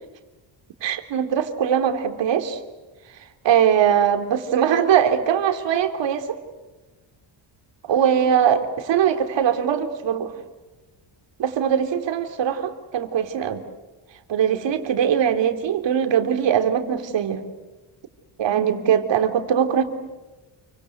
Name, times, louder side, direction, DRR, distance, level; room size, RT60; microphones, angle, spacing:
voice 1, 0.8-2.6 3.4-6.4 7.9-10.3 11.4-13.6 14.3-17.5 18.4-19.8, right 8 dB, 70° right, 7 dB, 3.3 m, -21 dB
29.0 x 25.0 x 8.1 m, 1.2 s
cardioid pair, 155°, 45 cm